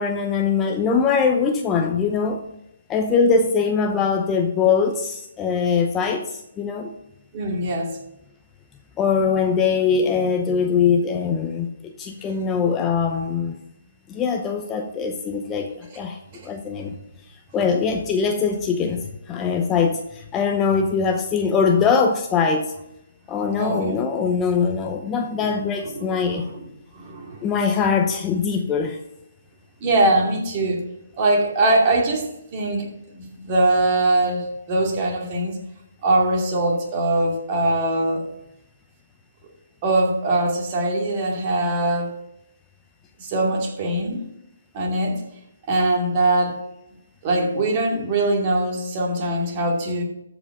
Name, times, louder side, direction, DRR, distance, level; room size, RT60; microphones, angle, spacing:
voice 1, 0.0-2.4 2.9-6.9 9.0-13.6 14.1-16.9 17.5-22.7 23.3-26.5 27.4-29.0, left 5 dB, 15° left, 4 dB, 0.8 m, -22 dB
voice 2, 7.3-8.0 16.3-16.5 23.6-24.0 25.8-26.6 26.9-27.5 29.8-30.8 31.2-32.9 33.1-35.6 36.0-38.3 39.8-42.1 43.2-44.3 44.7-45.2 45.7-46.6 47.2-50.0, right 2 dB, 35° right, 0 dB, 2.4 m, -22 dB
13.5 x 5.1 x 4.9 m, 0.84 s
figure-of-eight pair, 140°, 0 cm